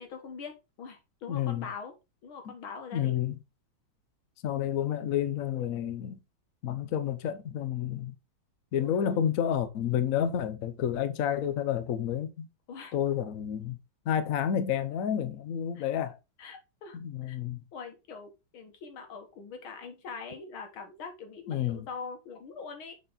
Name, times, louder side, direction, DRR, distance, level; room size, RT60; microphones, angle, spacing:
voice 1, 0.0-1.9 2.2-3.2 8.7-9.2 12.7-13.0 15.8-15.9 16.4-17.4 17.7-22.9, left 5 dB, 85° left, 2.2 m, -43 dB
voice 2, 1.3-1.7 2.5-2.6 2.9-3.4 4.4-6.2 6.6-8.1 8.7-12.5 12.9-13.8 14.1-16.1 16.9-17.6 21.5-21.8, left 9 dB, 60° left, 0.9 m, -30 dB
6.7 x 4.3 x 4.0 m
omnidirectional pair, 2.2 m